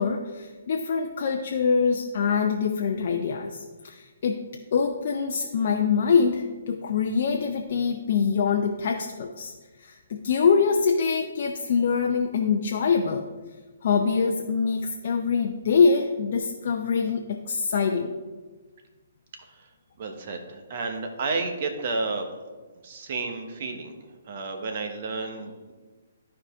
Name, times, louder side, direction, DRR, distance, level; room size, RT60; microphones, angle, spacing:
voice 1, 0.0-4.4 4.7-9.5 9.8-13.2 13.8-18.1, left 5 dB, 50° left, 2 dB, 0.6 m, -24 dB
voice 2, 19.4-19.7 20.0-22.3 22.8-25.7, right 3 dB, 45° right, 5 dB, 1.1 m, -32 dB
12.0 x 4.9 x 3.6 m, 1.3 s
figure-of-eight pair, 130°, 0 cm